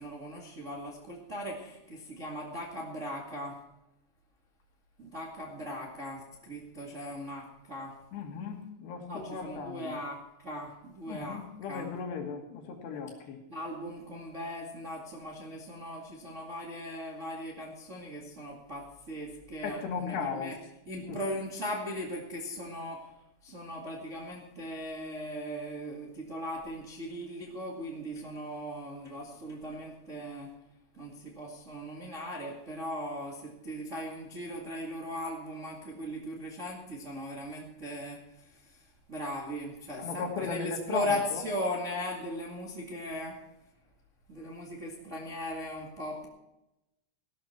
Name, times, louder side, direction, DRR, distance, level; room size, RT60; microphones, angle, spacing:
voice 1, 0.0-3.6 5.0-8.0 9.1-11.9 13.5-20.5 20.8-23.1 23.4-30.5 30.9-43.4 44.3-46.3, equal, 80° right, -2 dB, 0.6 m, -38 dB
voice 2, 8.1-10.0 11.1-13.4 19.6-20.6 21.0-21.2 40.0-41.4, left 6 dB, 65° left, 3 dB, 3.7 m, -37 dB
16.0 x 12.5 x 4.5 m, 0.92 s
omnidirectional pair, 5.4 m